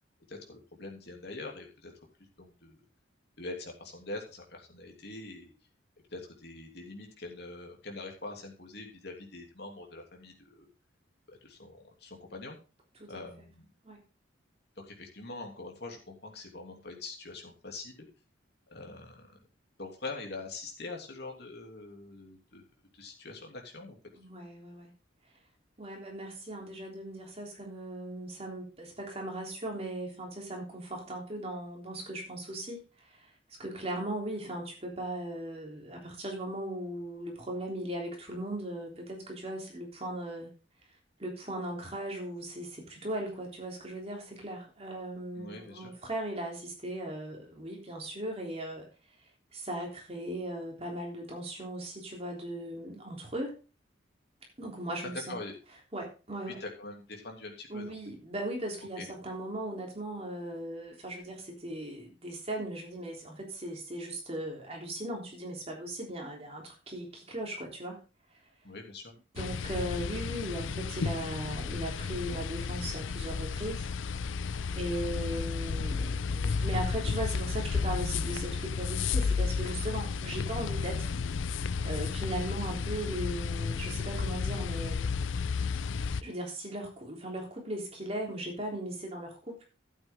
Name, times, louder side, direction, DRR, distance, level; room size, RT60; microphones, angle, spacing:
voice 1, 0.3-1.9 2.4-2.8 3.4-5.5 6.1-10.7 11.3-12.6 13.1-13.7 14.9-18.1 18.7-19.4 19.8-22.6 22.9-24.0 45.4-45.9 55.3-55.5 56.6-58.0 59.0-59.1 68.6-69.1, left 2 dB, 55° left, 1 dB, 3.0 m, -44 dB
voice 2, 24.1-24.9 25.8-33.3 33.6-40.5 41.2-48.9 49.5-53.5 54.6-55.4 55.9-56.6 57.7-68.0 69.3-73.9 74.7-81.1 81.8-85.1 86.2-89.6, right 1 dB, 30° right, 0 dB, 3.6 m, -38 dB
sound 1, 69.4-86.2, left 5 dB, 75° left, 0.4 m, -32 dB
12.5 x 8.9 x 3.8 m, 0.34 s
head